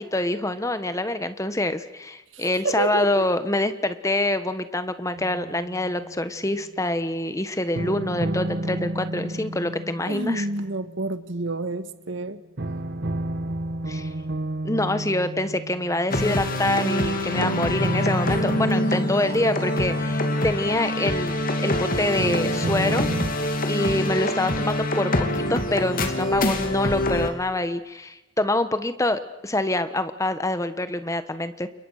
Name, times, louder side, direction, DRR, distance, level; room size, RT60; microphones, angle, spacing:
voice 1, 0.0-10.5 13.9-14.1 14.6-21.4 21.6-23.1 23.7-31.7, left 1 dB, 15° left, 11 dB, 1.3 m, -26 dB
voice 2, 2.3-3.1 10.1-12.4, right 2 dB, 70° right, 11 dB, 1.5 m, -29 dB
sound 1, 5.2-6.4 7.7-11.8 12.6-21.4 22.2-23.3, right 1 dB, 55° right, 1.2 m, -31 dB
sound 2, 16.1-27.3, left 1 dB, 45° left, 2.8 m, -25 dB
30.0 x 29.5 x 6.6 m, 0.97 s
head